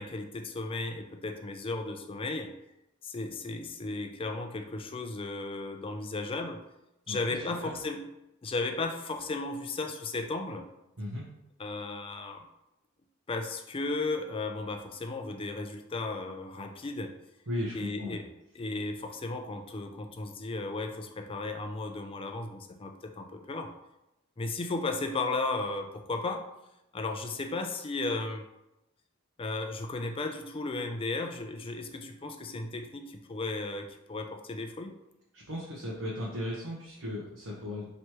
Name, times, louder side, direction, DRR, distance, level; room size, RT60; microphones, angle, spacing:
voice 1, 0.0-2.5 3.0-6.6 7.1-8.0 8.4-10.6 11.6-12.4 13.3-17.1 17.7-18.3 18.5-23.7 24.4-26.5 26.9-28.4 29.4-34.9, left 3 dB, 25° left, 5 dB, 0.4 m, -35 dB
voice 2, 17.5-18.2 35.3-37.9, left 1 dB, 80° right, -5 dB, 1.0 m, -36 dB
3.2 x 3.0 x 4.4 m, 0.89 s
head